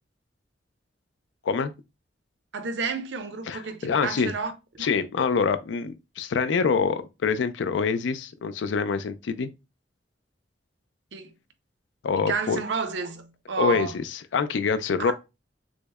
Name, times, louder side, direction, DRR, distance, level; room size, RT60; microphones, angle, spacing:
voice 1, 2.5-4.5 4.8-4.9 11.1-11.3 12.2-13.9 15.0-15.1, right 5 dB, 75° right, 0.6 m, -31 dB
voice 2, 3.5-4.3 4.8-9.5 12.0-12.6 13.6-15.1, left 5 dB, 80° left, 0.4 m, -25 dB
6.2 x 2.1 x 2.2 m
head